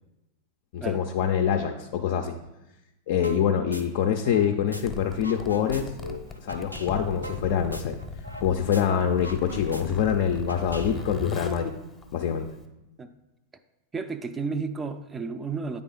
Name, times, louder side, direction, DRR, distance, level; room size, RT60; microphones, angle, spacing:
voice 1, 0.7-2.3 3.1-5.9 6.4-8.0 8.4-11.7 12.1-12.5, left 8 dB, 50° left, 4 dB, 0.4 m, -25 dB
sound 1, 3.2-3.4 3.7-4.8 5.1-8.5 8.7-8.8 9.1-11.2, left 1 dB, 90° right, 0.5 m, -39 dB
Zipper (clothing), 4.7-12.7, left 4 dB, 15° left, 0.7 m, -39 dB
voice 2, 13.9-15.8, right 4 dB, 15° right, 9 dB, 0.3 m, -32 dB
8.9 x 3.4 x 3.8 m, 0.95 s
figure-of-eight pair, 90°, 0 cm